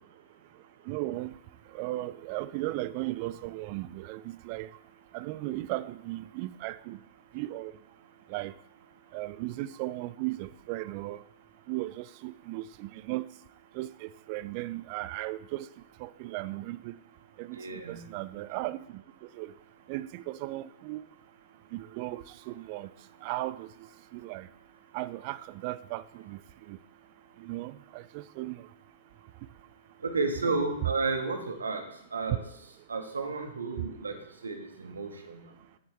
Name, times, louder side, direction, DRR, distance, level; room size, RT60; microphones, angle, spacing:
voice 1, 0.9-1.3 1.7-4.7 5.1-7.0 7.3-7.7 8.3-8.5 9.1-11.2 11.7-13.3 13.7-15.7 16.0-17.0 17.4-19.0 19.3-19.5 19.9-21.0 21.7-22.9 23.2-23.7 24.1-24.5 24.9-26.4 26.7-26.8 27.4-28.7, right 17 dB, 40° right, 0.4 m, -36 dB
voice 2, 17.5-18.0 30.0-31.8 32.1-32.4 32.9-35.4, right 3 dB, 75° right, 1.5 m, -32 dB
9.6 x 8.9 x 3.3 m
figure-of-eight pair, 105°, 0 cm